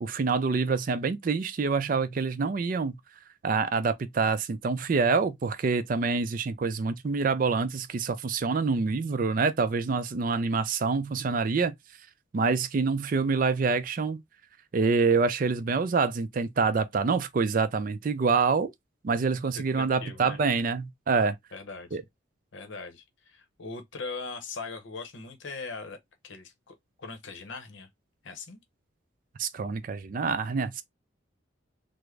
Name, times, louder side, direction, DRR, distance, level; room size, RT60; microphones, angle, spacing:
voice 1, 0.0-3.0 3.4-11.7 12.3-14.2 14.7-18.7 19.0-21.4 21.9-22.0 29.4-30.8, right 4 dB, 45° right, 0.3 m, -26 dB
voice 2, 19.5-20.4 21.5-21.9 22.5-26.0 26.2-27.9 28.2-28.6, left 4 dB, 70° left, 0.7 m, -40 dB
3.6 x 2.0 x 3.2 m
head